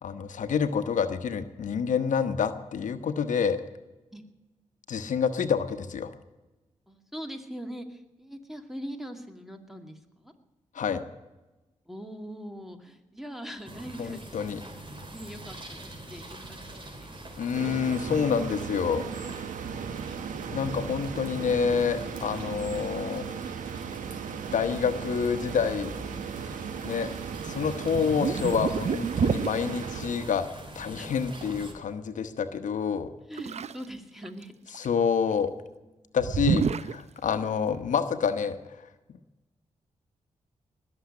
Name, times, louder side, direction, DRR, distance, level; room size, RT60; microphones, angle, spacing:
voice 1, 0.0-3.6 4.9-6.1 10.7-11.0 14.0-14.6 17.4-19.0 20.5-23.3 24.5-25.9 26.8-27.1 27.4-30.5 30.7-33.1 34.7-35.5 36.1-38.9, left 6 dB, 75° left, 9 dB, 1.1 m, -28 dB
voice 2, 6.9-10.3 11.9-14.5 15.1-17.1 31.0-31.1 33.2-34.5 36.0-36.2 37.4-37.5, equal, ahead, 6 dB, 2.3 m, -42 dB
sound 1, 13.6-31.7, right 1 dB, 40° right, 4.0 m, -43 dB
sound 2, 17.5-30.5, right 8 dB, 85° right, 0.9 m, -37 dB
sound 3, 27.4-27.6 27.9-29.6 33.4-33.9 34.2-34.9 36.2-37.0, right 7 dB, 60° right, 0.6 m, -28 dB
20.0 x 7.2 x 9.7 m, 1.1 s
cardioid pair, 55°, 13 cm